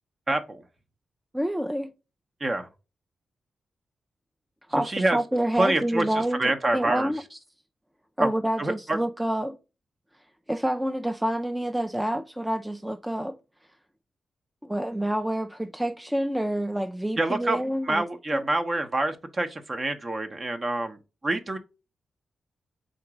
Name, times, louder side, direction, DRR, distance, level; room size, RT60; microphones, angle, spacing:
voice 1, 0.3-0.6 2.4-2.7 4.9-5.2 5.6-7.1 8.2-8.3 8.6-9.0 17.2-17.6 17.8-21.0 21.2-21.6, right 2 dB, 40° right, 0.8 m, -26 dB
voice 2, 1.3-1.9 4.7-7.4 8.2-9.6 10.5-13.4 14.6-18.0 18.3-18.5, right 1 dB, 10° right, 0.4 m, -28 dB
3.9 x 2.9 x 4.7 m
cardioid pair, 55°, 0 cm